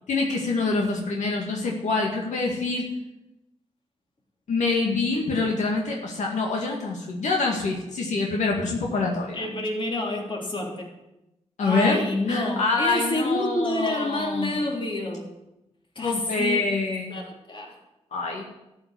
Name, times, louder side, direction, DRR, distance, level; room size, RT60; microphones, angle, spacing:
voice 1, 0.1-2.9 4.5-9.5 11.6-14.5 16.0-17.2 18.1-18.4, left 3 dB, 80° left, -1 dB, 2.1 m, -26 dB
voice 2, 9.3-10.9 11.6-15.3 15.9-16.8 17.1-17.7, left 1 dB, 45° left, 0 dB, 3.2 m, -28 dB
12.5 x 5.9 x 9.5 m, 0.92 s
cardioid pair, 70°, 12 cm